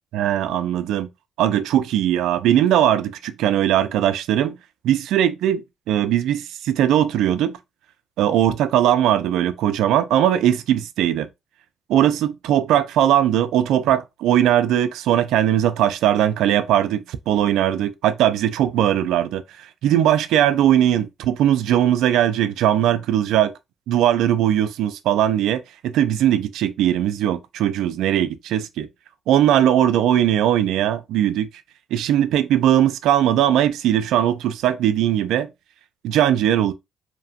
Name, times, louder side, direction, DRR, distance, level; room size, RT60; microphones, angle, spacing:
voice 1, 0.1-1.1 1.4-4.6 4.8-7.6 8.2-11.3 11.9-23.5 23.9-28.9 29.3-31.5 31.9-35.5 36.0-36.7, right 11 dB, 85° right, 0.3 m, -19 dB
2.8 x 2.2 x 2.8 m
cardioid pair, 75°, 0 cm